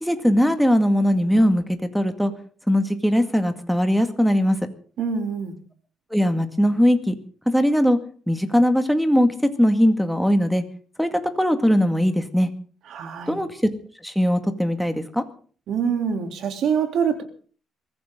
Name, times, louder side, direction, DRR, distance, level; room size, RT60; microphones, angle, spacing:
voice 1, 0.0-1.6 1.9-2.3 2.7-4.6 6.1-7.2 7.5-8.0 8.3-10.6 11.0-12.5 13.3-13.5 14.0-15.2, equal, ahead, 7 dB, 2.1 m, -20 dB
voice 2, 5.0-5.6 12.9-13.4 15.7-17.2, right 7 dB, 65° right, 6 dB, 3.3 m, -25 dB
23.0 x 15.0 x 3.9 m, 0.43 s
cardioid pair, 130°, 0 cm